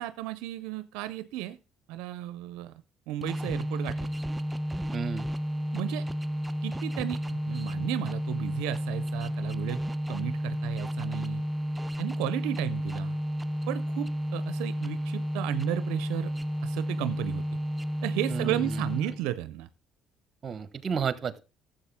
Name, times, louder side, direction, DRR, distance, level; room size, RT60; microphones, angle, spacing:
voice 1, 0.0-1.6 1.9-2.7 3.1-4.1 5.7-6.1 6.6-9.8 10.1-11.4 12.0-13.2 13.7-16.3 16.6-17.4 18.0-19.7, right 14 dB, 85° right, 13 dB, 0.5 m, -34 dB
sound 1, 3.2-19.3, equal, 10° right, 0.4 m, -32 dB
voice 2, 4.9-5.3 18.3-18.8 20.4-21.4, right 6 dB, 40° right, 14 dB, 1.0 m, -32 dB
13.0 x 7.6 x 3.5 m, 0.31 s
supercardioid pair, 80°, 0 cm